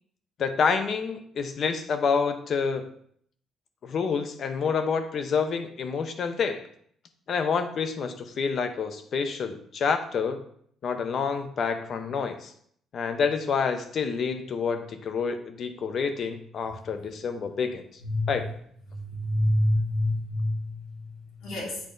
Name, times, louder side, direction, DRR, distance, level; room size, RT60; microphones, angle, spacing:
voice 1, 0.4-2.9 3.8-6.7 7.3-10.4 10.8-12.5 12.9-17.8 18.3-18.5, left 5 dB, 45° left, 9 dB, 0.6 m, -28 dB
voice 2, 18.0-18.4 19.1-20.7 21.4-21.8, left 1 dB, 80° left, -4 dB, 2.6 m, -26 dB
8.4 x 3.2 x 3.9 m, 0.64 s
cardioid pair, 150°, 0 cm